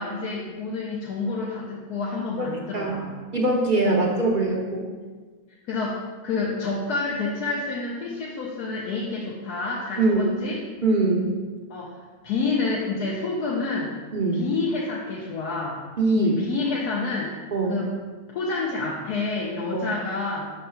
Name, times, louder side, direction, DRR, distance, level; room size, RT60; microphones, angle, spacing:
voice 1, 0.0-3.2 3.8-4.0 5.7-10.6 11.7-14.0 14.3-15.8 16.1-17.3 17.7-17.9 18.3-20.4, left 3 dB, 90° left, -4 dB, 1.3 m, -28 dB
voice 2, 3.3-4.8 10.0-10.3 10.8-11.3 14.1-14.4 16.0-16.4 17.5-17.8 19.7-19.9, right 2 dB, 55° right, -1 dB, 0.5 m, -22 dB
5.4 x 3.9 x 5.7 m, 1.4 s
omnidirectional pair, 1.6 m